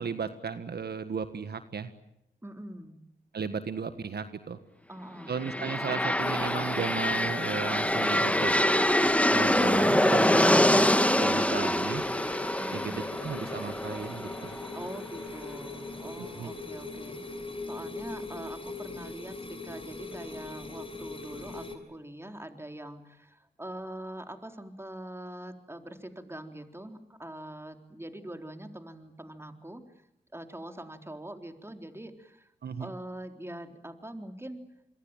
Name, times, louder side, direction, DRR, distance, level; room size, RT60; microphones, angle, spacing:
voice 1, 0.0-1.9 3.3-4.6 5.3-8.5 9.3-12.0 12.7-12.9 13.2-14.5 16.2-16.5 32.6-32.9, right 6 dB, 70° right, 10 dB, 1.6 m, -35 dB
voice 2, 2.4-3.0 4.9-5.4 12.6-13.1 14.7-17.2 17.7-29.8 30.3-32.5 32.8-34.6, right 1 dB, 15° right, 6 dB, 3.8 m, -43 dB
sound 1, 5.3-15.1, left 1 dB, 5° left, 1.5 m, -25 dB
sound 2, 6.2-21.7, left 3 dB, 30° left, 6.4 m, -40 dB
27.0 x 22.5 x 9.1 m, 0.80 s
cardioid pair, 40°, 17 cm